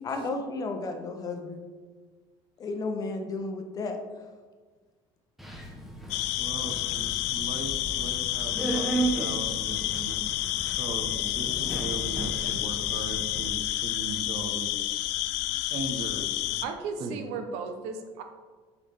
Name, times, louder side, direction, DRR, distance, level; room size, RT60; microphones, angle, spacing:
voice 1, 0.0-1.6 2.6-4.0, left 3 dB, 35° left, 5 dB, 0.8 m, -33 dB
Subway metro underground, 5.4-13.5, right 2 dB, ahead, 0.8 m, -35 dB
sound 1, 6.1-16.6, left 15 dB, 85° left, 0.4 m, -30 dB
voice 2, 6.4-10.2 10.7-15.0 15.7-16.6 17.0-17.2, right 3 dB, 45° right, 5 dB, 0.9 m, -38 dB
voice 3, 16.6-18.2, right 5 dB, 80° right, 6 dB, 0.8 m, -35 dB
6.5 x 5.2 x 3.5 m, 1.4 s
cardioid pair, 135°, 11 cm